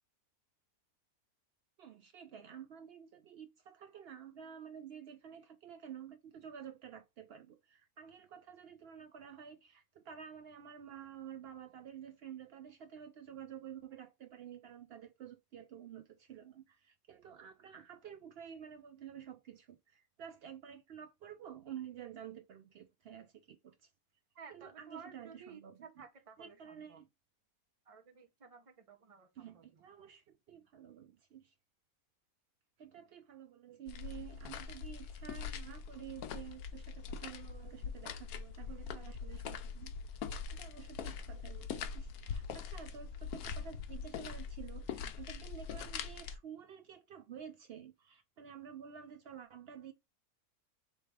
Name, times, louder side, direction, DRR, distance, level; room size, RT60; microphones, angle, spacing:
voice 1, 1.8-23.9 24.5-26.0 26.4-27.1 29.3-31.5 32.8-39.9 40.5-49.9, right 8 dB, 85° right, 0.5 m, -51 dB
voice 2, 24.3-27.0 27.9-29.6, right 5 dB, 30° right, 0.7 m, -55 dB
sound 1, 33.9-46.4, left 6 dB, 75° left, 1.1 m, -43 dB
3.4 x 3.2 x 4.6 m
omnidirectional pair, 1.6 m